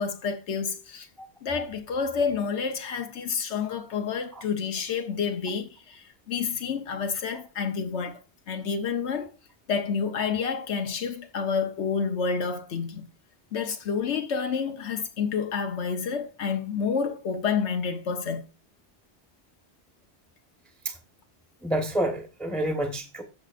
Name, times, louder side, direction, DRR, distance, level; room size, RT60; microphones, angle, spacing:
voice 1, 0.0-1.1 1.4-8.2 8.5-9.3 9.7-13.1 13.5-18.4, left 6 dB, 85° left, 1.2 m, -29 dB
voice 2, 21.6-23.2, right 1 dB, ahead, 1.0 m, -28 dB
15.0 x 6.2 x 2.5 m
omnidirectional pair, 1.1 m